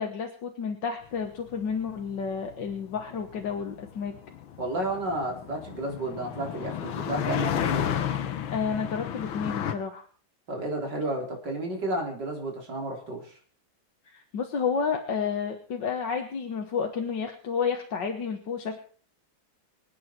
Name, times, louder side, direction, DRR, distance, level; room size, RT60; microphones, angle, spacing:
voice 1, 0.0-4.2 8.5-10.1 14.1-18.8, left 6 dB, 65° left, 3 dB, 2.0 m, -31 dB
sound 1, 1.3-9.7, left 9 dB, 90° left, 1.9 m, -33 dB
voice 2, 4.6-7.9 10.5-13.4, right 1 dB, 60° right, 0 dB, 4.4 m, -32 dB
26.0 x 9.1 x 4.5 m, 0.43 s
omnidirectional pair, 2.1 m